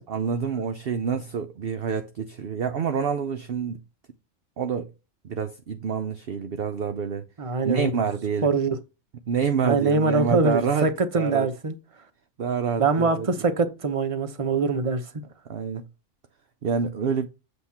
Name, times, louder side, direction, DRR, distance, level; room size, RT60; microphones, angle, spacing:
voice 1, 0.1-3.8 4.6-4.9 5.2-7.2 7.6-8.5 9.3-10.9 11.1-11.5 12.4-13.3 15.5-15.8 16.6-17.3, right 6 dB, 55° right, 0.8 m, -27 dB
voice 2, 7.4-7.9 8.4-8.8 9.6-11.7 12.8-15.1, right 4 dB, 25° right, 0.9 m, -23 dB
8.0 x 3.1 x 5.7 m
omnidirectional pair, 1.4 m